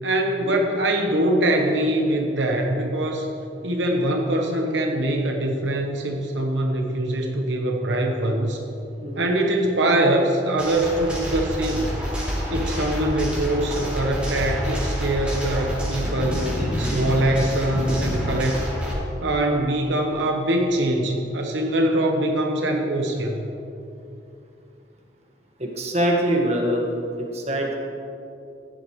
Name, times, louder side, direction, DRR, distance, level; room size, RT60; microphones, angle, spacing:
voice 1, 0.0-3.3 3.6-8.6 9.1-12.0 12.5-16.5 16.8-18.6 19.2-23.5, right 1 dB, 85° right, 1 dB, 1.1 m, -23 dB
voice 2, 9.0-9.3 25.6-26.8 27.2-27.8, right 1 dB, 35° right, -1 dB, 1.6 m, -24 dB
sound 1, 10.6-18.9, equal, 5° right, 2.7 m, -27 dB
15.5 x 10.5 x 3.2 m, 2.7 s
head